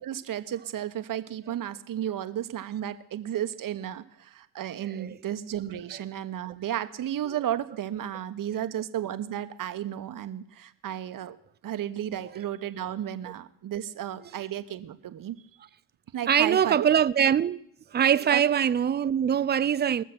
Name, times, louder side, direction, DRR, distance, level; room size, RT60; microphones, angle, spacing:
voice 1, 0.0-11.4 11.6-15.4 16.1-16.9 18.3-18.4, right 11 dB, 45° right, 1.0 m, -33 dB
voice 2, 16.3-17.6 17.9-20.0, right 9 dB, 25° right, 0.5 m, -23 dB
21.0 x 7.3 x 6.1 m
hypercardioid pair, 55°, 45 cm